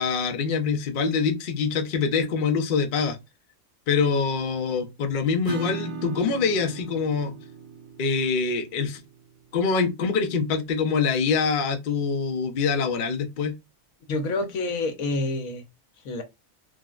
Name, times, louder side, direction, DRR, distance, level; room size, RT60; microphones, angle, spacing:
voice 1, 0.0-3.2 3.9-7.3 8.0-9.0 9.5-13.5, left 5 dB, 60° left, 0.5 m, -25 dB
Acoustic guitar / Strum, 5.4-10.9, right 4 dB, 60° right, 0.7 m, -39 dB
voice 2, 14.1-15.6 16.0-16.2, left 2 dB, 80° left, 1.1 m, -27 dB
3.6 x 2.0 x 2.3 m
omnidirectional pair, 1.4 m